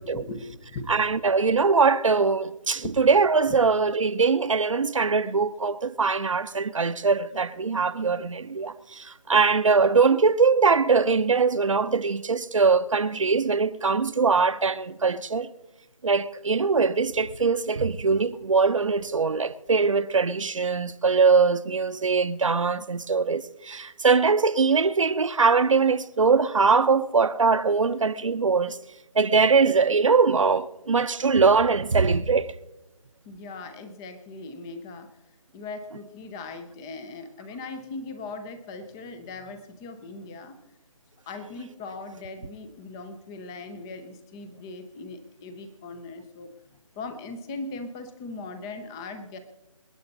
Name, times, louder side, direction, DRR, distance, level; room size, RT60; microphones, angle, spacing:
voice 1, 0.0-0.9 2.8-3.0 3.5-3.6 33.3-35.1 35.5-40.5 41.3-46.5 47.0-49.4, left 3 dB, 5° left, 0.5 m, -39 dB
voice 2, 0.9-15.5 16.0-28.8 29.2-32.5, right 4 dB, 65° right, 0.9 m, -22 dB
27.0 x 9.5 x 4.0 m
figure-of-eight pair, 160°, 18 cm